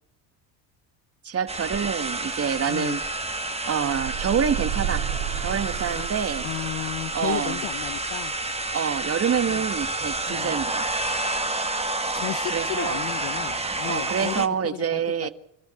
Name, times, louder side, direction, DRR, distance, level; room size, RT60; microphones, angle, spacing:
voice 1, 1.2-3.0 3.6-5.1 5.4-6.5 7.1-7.6 8.7-10.9 12.5-13.0 13.9-15.3, right 7 dB, 35° right, 12 dB, 1.6 m, -27 dB
sound 1, 1.5-14.5, right 2 dB, 15° right, 2.1 m, -29 dB
voice 2, 2.7-3.0 5.9-6.0 6.4-8.3 9.5-9.7 10.3-10.5 11.9-15.3, left 16 dB, 65° left, 11 dB, 1.1 m, -34 dB
sound 2, 3.8-8.8, right 9 dB, 75° right, 6.9 m, -33 dB
30.0 x 14.0 x 9.0 m, 0.76 s
supercardioid pair, 85°, 44 cm